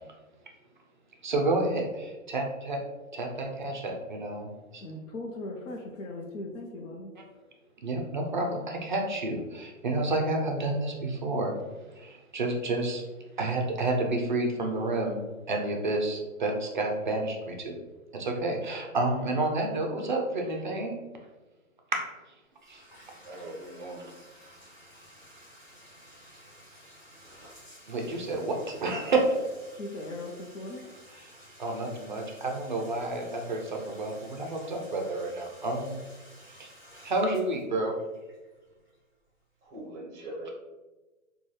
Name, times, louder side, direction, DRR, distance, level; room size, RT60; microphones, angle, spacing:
voice 1, 1.2-2.8 3.1-4.8 7.8-11.6 11.9-13.0 13.4-15.2 15.5-17.8 18.1-21.0 22.7-22.8 27.9-29.2 31.6-36.0 36.6-36.7 37.0-37.9, right 2 dB, 40° right, 2 dB, 0.4 m, -30 dB
voice 2, 4.8-7.1 29.8-30.9, left 2 dB, 65° left, 0 dB, 0.7 m, -39 dB
Bathtub (filling or washing), 22.5-39.3, equal, 15° left, 1.3 m, -53 dB
voice 3, 23.2-24.2 39.6-40.5, right 1 dB, 15° right, -4 dB, 0.8 m, -41 dB
4.0 x 2.3 x 3.1 m, 1.2 s
hypercardioid pair, 150°, 41 cm